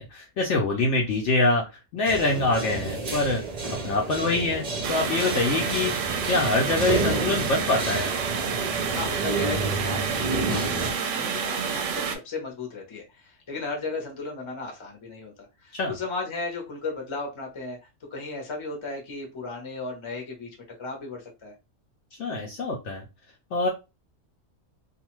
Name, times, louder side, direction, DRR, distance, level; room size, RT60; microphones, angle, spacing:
voice 1, 0.0-1.6 1.9-3.4 3.8-5.9 6.3-8.1 15.7-16.0 22.2-23.0 23.5-23.7, left 2 dB, 65° left, 1 dB, 0.8 m, -25 dB
sound 1, 2.0-10.9, right 3 dB, 45° right, 0.5 m, -31 dB
sound 2, 4.8-12.2, right 6 dB, 70° right, 0.8 m, -29 dB
voice 2, 8.9-17.8 18.1-20.5 20.8-21.5, left 3 dB, 25° left, 1 dB, 0.7 m, -35 dB
2.5 x 2.3 x 3.0 m, 0.26 s
omnidirectional pair, 1.5 m